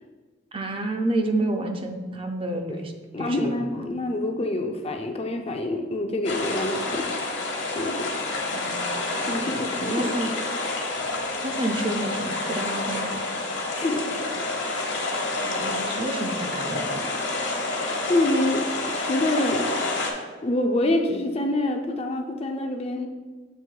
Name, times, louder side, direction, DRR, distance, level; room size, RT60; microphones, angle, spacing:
voice 1, 0.5-2.9 3.2-3.9 8.5-10.3 11.4-13.4 15.5-17.0, right 1 dB, 30° right, 5 dB, 0.5 m, -30 dB
voice 2, 3.1-7.2 7.7-8.1 9.2-10.4 13.8-14.5 18.1-19.7 20.4-23.1, left 1 dB, 30° left, 4 dB, 0.5 m, -26 dB
sound 1, 6.2-20.1, left 2 dB, 65° left, 1.1 m, -28 dB
7.4 x 3.0 x 4.6 m, 1.3 s
head